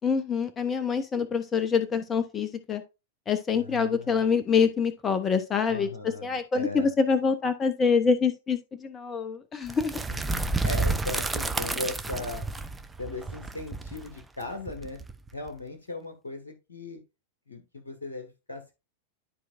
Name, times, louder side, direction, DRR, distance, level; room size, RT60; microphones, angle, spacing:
voice 1, 0.0-2.8 3.3-5.9 6.2-10.0, left 5 dB, 20° left, 0.8 m, -25 dB
voice 2, 3.6-4.2 5.6-6.9 10.1-12.4 13.0-15.0 15.3-17.0 17.5-18.8, left 2 dB, 70° left, 1.4 m, -38 dB
sound 1, 9.7-15.5, right 3 dB, 10° right, 0.6 m, -30 dB
12.0 x 4.6 x 2.5 m
figure-of-eight pair, 90°, 0 cm